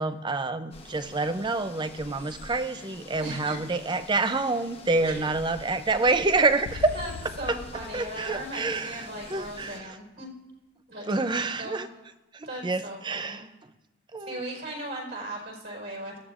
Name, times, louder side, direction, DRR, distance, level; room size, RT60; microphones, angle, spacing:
voice 1, 0.0-6.9 7.2-7.6 7.9-10.0 11.1-11.9 12.3-13.7 14.1-14.4, right 3 dB, 20° right, 11 dB, 0.4 m, -27 dB
sound 1, 0.7-9.8, left 2 dB, 25° left, 1.0 m, -46 dB
voice 2, 3.2-3.6 5.0-5.2 6.9-7.1 7.4-10.3 10.9-11.1 11.6-11.8 12.4-13.4 14.2-16.2, right 1 dB, 50° right, -2 dB, 4.4 m, -38 dB
sound 2, 6.7-9.6, left 5 dB, 70° left, 0.4 m, -43 dB
20.0 x 14.5 x 2.5 m, 1.1 s
head